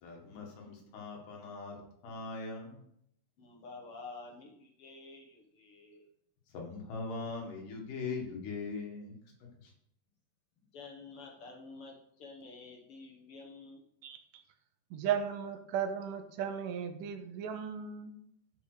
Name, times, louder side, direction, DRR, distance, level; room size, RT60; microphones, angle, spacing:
voice 1, 0.0-2.8 6.5-9.2 9.6-9.7, left 4 dB, 75° left, 0 dB, 3.5 m, -41 dB
voice 2, 3.4-6.0 10.6-13.8, left 3 dB, 55° left, 0 dB, 1.8 m, -50 dB
voice 3, 14.0-14.4 14.9-18.2, right 8 dB, 80° right, 7 dB, 2.4 m, -36 dB
11.0 x 5.3 x 4.9 m, 0.72 s
omnidirectional pair, 3.7 m